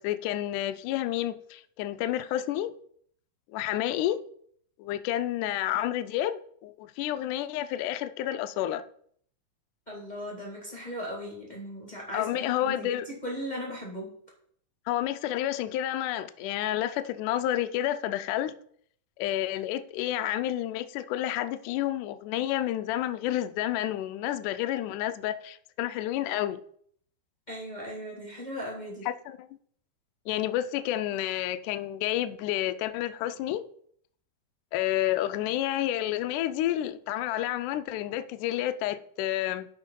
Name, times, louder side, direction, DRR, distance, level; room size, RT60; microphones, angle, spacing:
voice 1, 0.0-2.7 3.5-4.2 4.8-8.8 12.1-13.1 14.9-18.5 19.2-26.6 29.1-29.5 30.3-33.6 34.7-39.7, left 13 dB, 90° left, 1.8 m, -30 dB
voice 2, 9.9-14.2 27.5-29.1, equal, 25° left, 0.9 m, -38 dB
12.5 x 5.3 x 3.8 m
omnidirectional pair, 4.3 m